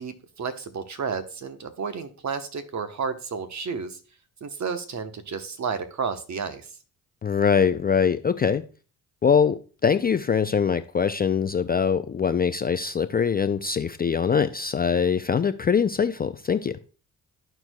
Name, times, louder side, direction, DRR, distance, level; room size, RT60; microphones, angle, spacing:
voice 1, 0.0-4.0 4.4-6.7, right 5 dB, 45° right, 1.1 m, -31 dB
voice 2, 7.2-8.6 9.2-16.8, left 6 dB, 25° left, 0.4 m, -23 dB
13.0 x 4.5 x 2.3 m
supercardioid pair, 65°, 39 cm